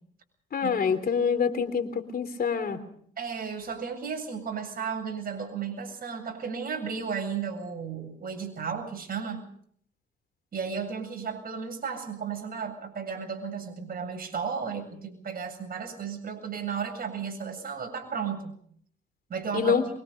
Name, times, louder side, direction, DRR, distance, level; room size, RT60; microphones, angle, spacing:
voice 1, 0.5-2.8 19.5-19.8, left 6 dB, 50° left, 10 dB, 3.5 m, -26 dB
voice 2, 3.2-9.5 10.5-18.5 19.3-19.8, right 6 dB, 45° right, 4 dB, 7.8 m, -34 dB
25.0 x 24.0 x 5.3 m, 0.64 s
cardioid pair, 90°, 20 cm